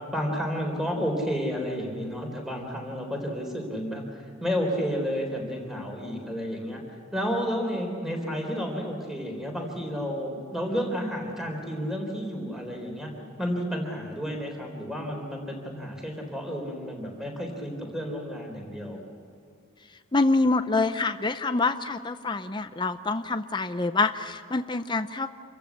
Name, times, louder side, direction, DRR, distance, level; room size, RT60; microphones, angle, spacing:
voice 1, 0.1-13.1 13.4-19.0, equal, ahead, 1 dB, 3.9 m, -31 dB
voice 2, 20.1-25.3, left 3 dB, 20° left, 9 dB, 0.6 m, -26 dB
27.0 x 15.0 x 8.2 m, 2.3 s
head